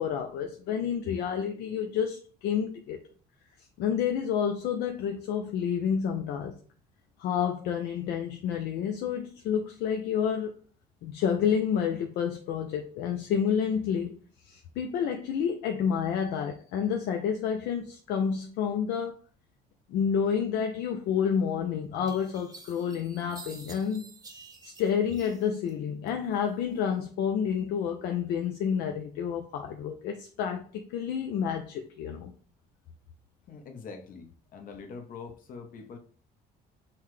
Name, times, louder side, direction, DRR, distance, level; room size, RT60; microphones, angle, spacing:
voice 1, 0.0-3.0 3.8-6.5 7.2-10.5 11.0-14.2 14.4-19.2 19.9-24.0 24.6-32.3, left 7 dB, 80° left, 0.5 m, -29 dB
sound 1, 21.3-21.4 22.1-25.7 26.1-26.8, right 3 dB, 20° right, 0.7 m, -50 dB
voice 2, 33.5-36.0, left 5 dB, 55° left, 0.8 m, -44 dB
5.6 x 2.2 x 3.1 m
cardioid pair, 110°, 17 cm